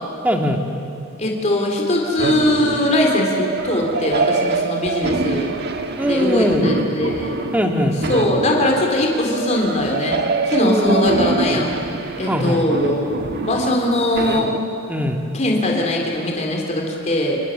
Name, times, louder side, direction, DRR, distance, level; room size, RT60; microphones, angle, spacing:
voice 1, 0.2-0.6 6.0-6.7 7.5-8.0 10.6-11.7 12.3-12.6 14.9-15.2, equal, 5° right, 2 dB, 2.1 m, -20 dB
voice 2, 1.2-5.5 6.0-7.3 8.1-10.2 10.5-11.7 12.2-13.1 13.4-14.5 15.3-17.4, left 1 dB, 35° left, 0 dB, 3.8 m, -20 dB
sound 1, 2.2-14.6, right 3 dB, 50° right, 1.3 m, -25 dB
29.0 x 20.5 x 7.5 m, 2.7 s
head